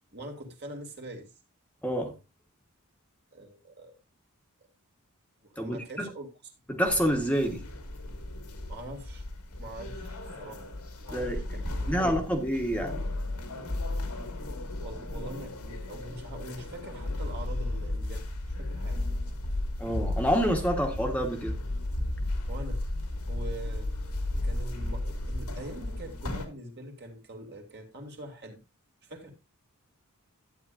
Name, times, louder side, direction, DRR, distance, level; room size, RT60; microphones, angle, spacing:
voice 1, 0.1-1.3 3.3-3.9 5.4-6.3 8.7-9.3 9.6-10.7 11.0-12.2 14.8-18.2 18.6-19.1 22.5-22.9 23.3-23.9 24.4-28.6 29.0-29.3, right 1 dB, 50° right, 2.4 m, -43 dB
voice 2, 1.8-2.2 5.6-6.1 6.7-7.6 11.1-11.4 11.9-13.0 19.8-21.5, equal, 5° left, 1.2 m, -28 dB
sound 1, 6.9-26.4, left 1 dB, 85° left, 1.9 m, -34 dB
12.5 x 9.0 x 2.5 m
head